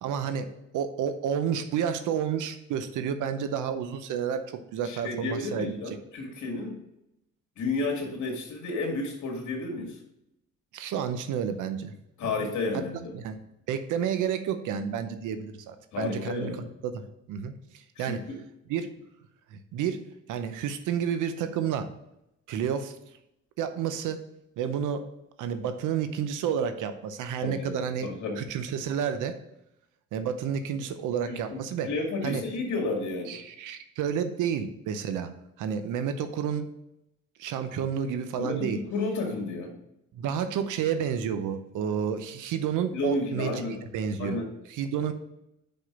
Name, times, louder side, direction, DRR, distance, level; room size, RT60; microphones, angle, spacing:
voice 1, 0.0-5.8 10.7-11.9 12.2-12.3 13.1-13.4 13.7-17.0 17.3-17.5 18.0-18.2 18.7-18.9 19.5-20.0 20.3-21.9 22.5-22.9 23.6-24.2 24.6-25.0 25.4-28.1 28.4-29.4 30.1-31.9 32.2-32.4 33.3-35.3 35.6-36.7 37.4-38.8 40.1-44.4 44.7-45.1, right 8 dB, 85° right, 9 dB, 0.8 m, -30 dB
voice 2, 4.8-6.8 7.6-9.9 12.2-13.1 15.9-16.6 18.0-18.4 27.4-28.5 31.2-33.4 38.4-39.8 42.9-43.8 44.2-44.5, left 3 dB, 70° left, 1 dB, 2.3 m, -32 dB
5.7 x 5.2 x 5.8 m, 0.83 s
cardioid pair, 90°, 30 cm